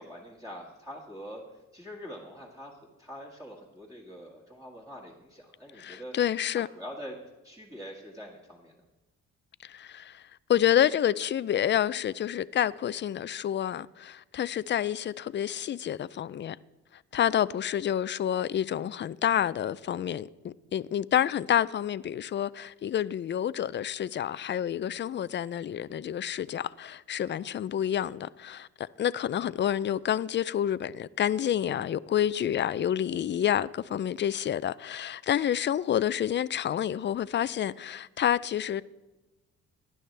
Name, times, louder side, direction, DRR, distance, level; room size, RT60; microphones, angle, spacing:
voice 1, 0.0-1.4 1.7-6.2 6.6-7.2 7.4-8.7, equal, 10° right, 2.0 m, -44 dB
voice 2, 5.8-6.7 9.6-10.2 10.5-16.6 17.1-38.8, left 10 dB, 40° left, 0.4 m, -28 dB
18.0 x 11.0 x 3.4 m
cardioid pair, 90°, 30 cm